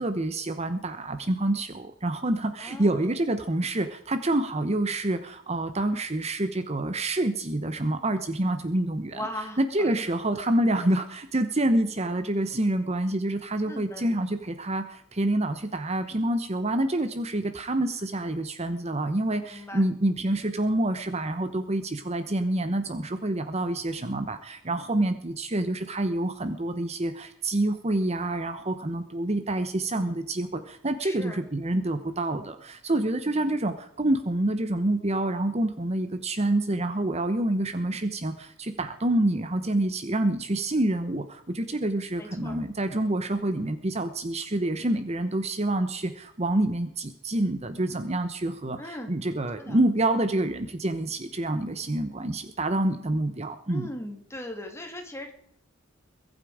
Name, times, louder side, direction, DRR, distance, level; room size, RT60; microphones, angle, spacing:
voice 1, 0.0-9.2 9.6-53.9, right 1 dB, 35° right, 9 dB, 1.0 m, -27 dB
voice 2, 2.6-3.1 9.1-10.1 13.7-14.2 19.5-19.9 31.0-31.5 42.2-42.6 48.8-49.1 49.6-49.8 53.7-55.3, left 1 dB, 15° left, 4 dB, 2.7 m, -39 dB
22.5 x 9.0 x 5.0 m, 0.71 s
head